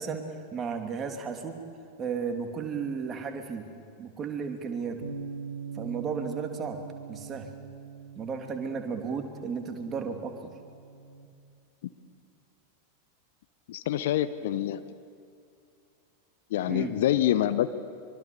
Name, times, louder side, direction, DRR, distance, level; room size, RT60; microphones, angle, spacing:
voice 1, 0.0-1.6 2.0-3.7 4.0-5.1 5.7-6.8 7.1-7.5 8.1-10.3 16.7-16.9, right 5 dB, 25° right, 4 dB, 2.9 m, -34 dB
Bass guitar, 5.0-11.3, right 6 dB, 60° right, 2.4 m, -43 dB
voice 2, 13.7-14.8 16.5-17.7, left 12 dB, 55° left, 13 dB, 0.9 m, -26 dB
25.0 x 24.0 x 7.0 m, 2.5 s
figure-of-eight pair, 90°, 0 cm